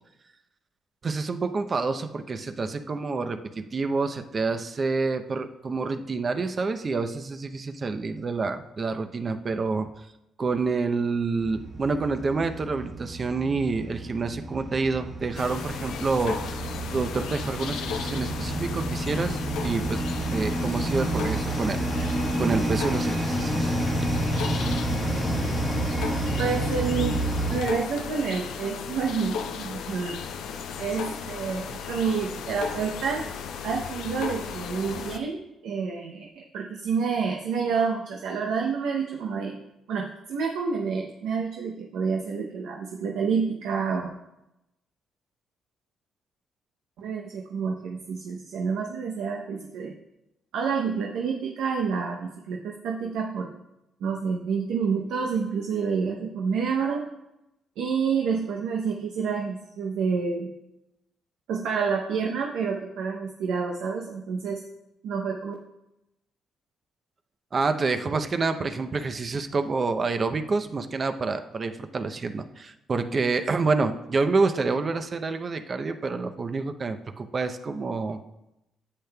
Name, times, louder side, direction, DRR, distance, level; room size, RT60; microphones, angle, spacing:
voice 1, 1.0-9.9 10.4-16.6 16.9-20.0 20.3-23.7 67.5-78.2, right 4 dB, 40° right, 8 dB, 0.7 m, -28 dB
sound 1, 11.4-27.6, right 1 dB, 25° right, 1.5 m, -29 dB
sound 2, 15.3-35.2, left 7 dB, 85° left, 0.6 m, -35 dB
voice 2, 26.4-27.2 27.5-30.2 30.8-33.3 33.6-39.6 39.9-44.1 47.0-50.0 50.5-53.5 54.0-57.0 57.8-60.5 61.5-64.6 65.0-65.5, right 5 dB, 85° right, 0 dB, 0.8 m, -28 dB
10.0 x 8.4 x 2.3 m, 0.89 s
cardioid pair, 90°, 0 cm